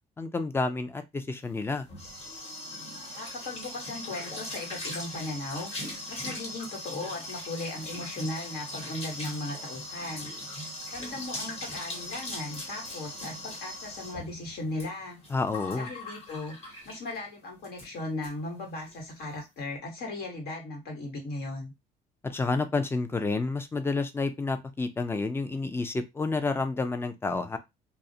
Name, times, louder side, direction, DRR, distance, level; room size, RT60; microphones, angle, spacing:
voice 1, 0.2-1.9 15.3-15.9 22.2-27.6, left 3 dB, 15° left, 0.4 m, -29 dB
sound 1, 1.5-17.3 17.6-17.9 18.2-18.3 18.6-19.0, left 1 dB, 35° left, 1.2 m, -40 dB
voice 2, 3.1-5.7 6.1-10.3 10.9-15.2 15.7-21.7, left 2 dB, 65° left, 1.2 m, -37 dB
2.3 x 2.0 x 2.7 m
cardioid pair, 110°, 17 cm